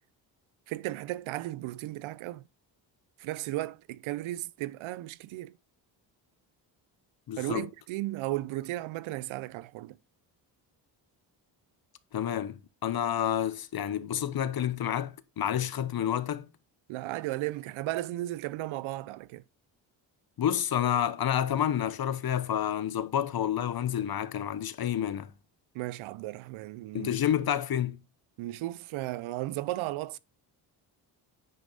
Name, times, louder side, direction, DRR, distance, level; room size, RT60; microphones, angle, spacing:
voice 1, 0.7-2.4 3.2-5.5 7.4-10.0 16.9-19.4 25.7-27.2 28.4-30.2, right 16 dB, 75° right, 0.7 m, -35 dB
voice 2, 7.3-7.7 12.1-16.5 20.4-25.3 26.9-28.0, left 10 dB, 50° left, 1.1 m, -29 dB
9.6 x 5.2 x 3.9 m
supercardioid pair, 60°, 48 cm